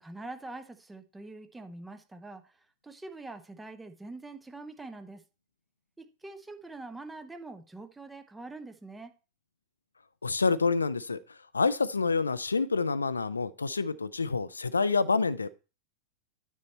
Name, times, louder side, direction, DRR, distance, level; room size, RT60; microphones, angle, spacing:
voice 1, 0.0-5.2 6.0-9.1, right 2 dB, 10° right, 8 dB, 0.8 m, -44 dB
voice 2, 10.2-11.2 11.5-15.5, left 4 dB, 75° left, 17 dB, 0.4 m, -27 dB
9.3 x 4.1 x 4.4 m, 0.32 s
figure-of-eight pair, 90°, 0 cm